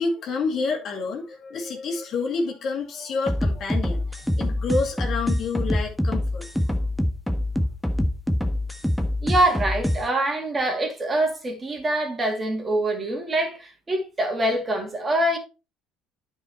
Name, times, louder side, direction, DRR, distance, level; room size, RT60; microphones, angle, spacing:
voice 1, 0.0-6.5, left 4 dB, 50° left, 2.3 m, -28 dB
hammhocked bass, 3.3-10.0, left 1 dB, ahead, 1.3 m, -25 dB
voice 2, 9.2-15.4, right 1 dB, 25° right, 2.7 m, -24 dB
9.5 x 5.0 x 4.5 m
supercardioid pair, 105°, 0 cm